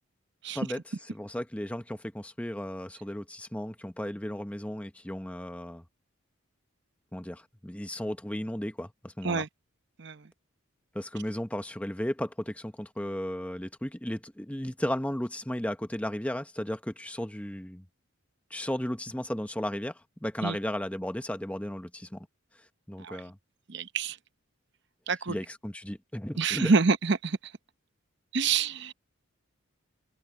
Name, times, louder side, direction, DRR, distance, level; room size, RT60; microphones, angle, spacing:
voice 1, 1.1-5.8 7.1-9.4 10.9-17.8 18.5-22.3 22.9-23.4 25.3-26.7, equal, 5° left, 0.8 m, -35 dB
voice 2, 10.0-10.3 20.4-20.6 23.0-23.2 23.7-24.2 25.1-25.4 26.4-27.5 28.3-28.9, right 4 dB, 55° right, 0.8 m, -27 dB
head